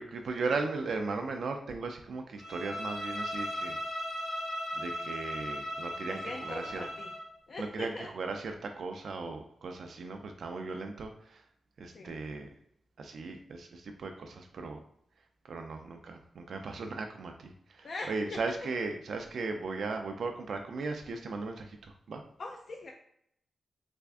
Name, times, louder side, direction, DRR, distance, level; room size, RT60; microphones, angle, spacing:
voice 1, 0.0-3.8 4.8-6.8 7.6-11.4 11.8-12.5 13.0-14.8 15.4-22.2, right 3 dB, 65° right, 4 dB, 0.3 m, -37 dB
Bowed string instrument, 2.4-7.3, equal, 70° left, 0.8 m, -37 dB
voice 2, 6.1-7.1 7.5-8.1 11.9-12.1 17.8-18.4 22.4-22.9, left 2 dB, 45° left, 2 dB, 0.3 m, -41 dB
3.3 x 2.4 x 3.4 m, 0.72 s
wide cardioid pair, 160°, 0 cm